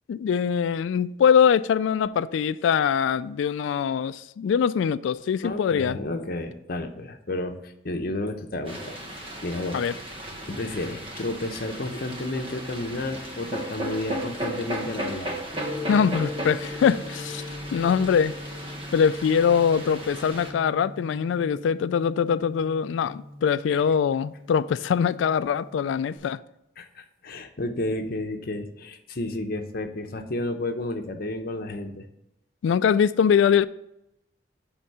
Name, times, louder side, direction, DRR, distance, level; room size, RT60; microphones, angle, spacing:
voice 1, 0.1-6.0 9.7-9.9 15.9-17.4 17.7-18.4 18.9-26.4 32.6-33.7, left 7 dB, 80° left, 0.3 m, -23 dB
voice 2, 5.4-9.8 10.5-15.3 23.7-23.8 26.8-32.1, left 2 dB, 55° left, 0.9 m, -32 dB
sound 1, 8.6-20.5, right 1 dB, 30° right, 1.4 m, -36 dB
Gong, 15.5-26.2, left 2 dB, 10° left, 3.6 m, -40 dB
11.0 x 3.7 x 5.5 m
head